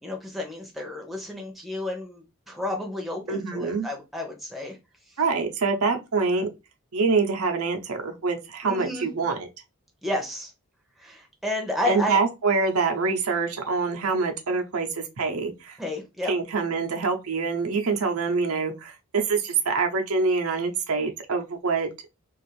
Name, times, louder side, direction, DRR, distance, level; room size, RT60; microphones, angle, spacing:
voice 1, 0.0-4.8 8.6-9.1 10.0-10.5 11.0-12.2 15.8-16.3, left 1 dB, ahead, 0.5 m, -31 dB
voice 2, 3.3-3.9 5.2-6.5 6.9-9.5 11.9-15.8 16.2-21.9, right 4 dB, 85° right, 0.6 m, -25 dB
2.5 x 2.4 x 3.1 m
head